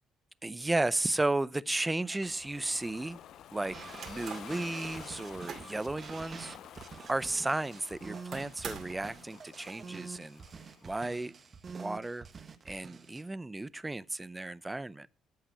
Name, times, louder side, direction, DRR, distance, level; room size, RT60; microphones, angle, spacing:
voice 1, 0.4-3.2 3.5-3.8 4.1-6.6 7.1-10.4 10.8-11.3 11.7-12.3 12.7-15.1, right 2 dB, 15° right, 0.5 m, -34 dB
sound 1, 1.9-2.7 3.6-4.6 5.1-5.8 6.2-6.3 6.8-6.9 8.3-9.2, right 6 dB, 60° right, 2.3 m, -46 dB
Ocean, 2.2-11.1, left 10 dB, 65° left, 0.5 m, -51 dB
sound 2, 3.7-13.2, right 5 dB, 45° right, 1.2 m, -47 dB
13.5 x 5.7 x 5.6 m
hypercardioid pair, 55°, 0 cm